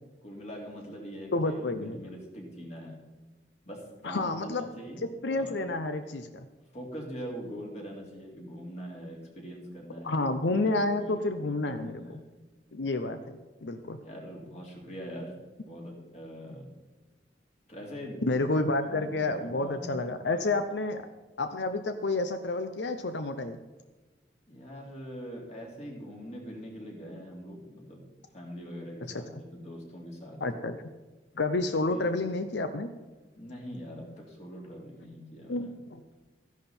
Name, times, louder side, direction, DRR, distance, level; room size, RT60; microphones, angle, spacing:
voice 1, 0.2-3.0 3.6-5.7 6.7-12.3 14.0-15.3 15.6-16.7 17.6-18.2 18.5-18.6 18.9-20.1 20.7-20.8 24.5-28.0 28.3-30.4 31.9-32.1 33.4-35.7, equal, 40° left, -1 dB, 3.1 m, -43 dB
voice 2, 1.3-2.0 4.0-4.7 5.2-6.5 10.0-12.2 12.7-13.2 13.6-14.0 18.2-21.1 21.4-23.6 29.1-29.2 30.4-30.8 31.4-32.9 35.5-36.0, left 2 dB, 80° left, 9 dB, 0.7 m, -29 dB
13.5 x 11.0 x 4.4 m, 1.2 s
head